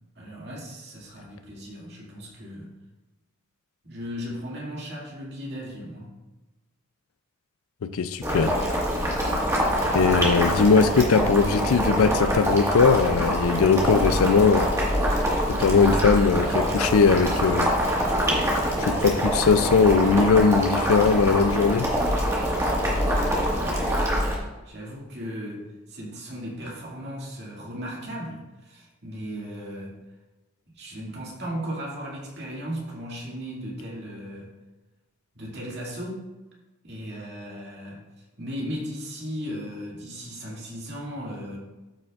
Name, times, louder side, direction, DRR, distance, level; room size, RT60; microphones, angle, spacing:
voice 1, 0.2-2.7 3.8-6.2 23.1-24.2 24.6-29.9 30.8-34.5 35.4-36.3 36.8-41.6, equal, 50° right, 2.3 m, -36 dB
voice 2, 7.8-8.6 9.9-14.7 15.5-17.7 18.8-21.9, left 5 dB, 80° left, 0.4 m, -20 dB
Boiling, 8.2-24.4, equal, 15° right, 1.6 m, -24 dB
12.5 x 6.1 x 2.4 m
head